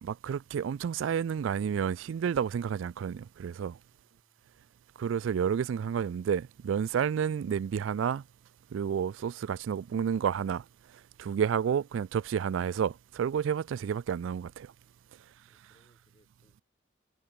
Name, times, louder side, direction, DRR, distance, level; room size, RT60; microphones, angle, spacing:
voice 1, 0.0-3.8 5.0-8.2 8.7-10.6 11.2-14.7, right 7 dB, 80° right, 0.3 m, -30 dB
voice 2, 3.9-4.7 15.1-16.6, equal, 30° left, 6.9 m, -70 dB
head